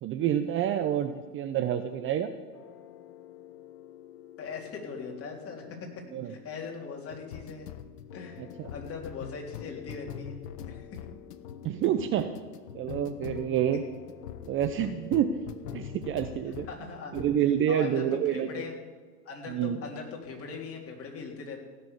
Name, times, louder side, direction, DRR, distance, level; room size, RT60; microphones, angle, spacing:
voice 1, 0.0-2.3 6.1-6.3 8.4-8.7 11.6-12.3 12.7-13.8 14.5-15.3 15.7-16.7 17.1-18.5 19.5-19.8, right 10 dB, 25° right, 9 dB, 0.8 m, -28 dB
sound 1, 2.5-16.8 17.1-17.4, left 9 dB, 70° left, 1.1 m, -44 dB
voice 2, 4.4-7.7 8.1-10.4 10.7-10.9 16.7-17.2 17.7-18.7 19.3-21.6, left 5 dB, 30° left, 1 dB, 3.6 m, -40 dB
16.5 x 7.0 x 9.7 m, 1.5 s
hypercardioid pair, 105°, 48 cm